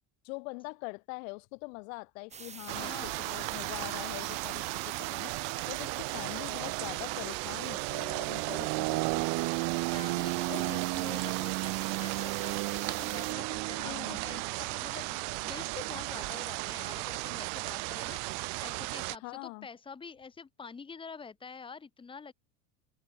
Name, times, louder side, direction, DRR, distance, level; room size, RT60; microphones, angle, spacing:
voice 1, 0.2-9.3 10.5-10.8 13.8-14.2 19.2-19.7, left 30 dB, 75° left, 3.9 m, -43 dB
sound 1, 2.3-13.3, right 6 dB, 15° right, 3.1 m, -48 dB
voice 2, 2.7-3.2 9.9-22.3, left 5 dB, 10° left, 2.6 m, -47 dB
sound 2, 2.7-19.2, right 33 dB, 50° right, 0.8 m, -34 dB
cardioid pair, 170°, 41 cm